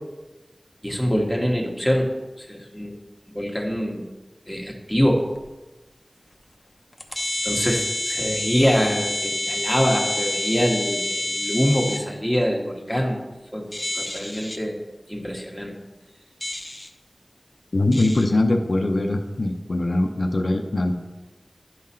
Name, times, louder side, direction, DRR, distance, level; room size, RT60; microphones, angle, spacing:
voice 1, 0.8-2.1 2.4-2.9 3.3-4.0 4.5-5.3 7.4-13.2 13.5-13.7 13.9-14.8 15.1-15.7, equal, ahead, -1 dB, 1.5 m, -24 dB
sound 1, 5.3-5.4 6.3-6.4 6.9-12.0 13.7-14.6 16.4-16.9 17.9-18.3, left 1 dB, 30° left, 0.7 m, -28 dB
voice 2, 17.7-20.9, left 2 dB, 75° left, 4 dB, 0.6 m, -22 dB
11.0 x 3.8 x 4.3 m, 1.1 s
wide cardioid pair, 50°, 0 cm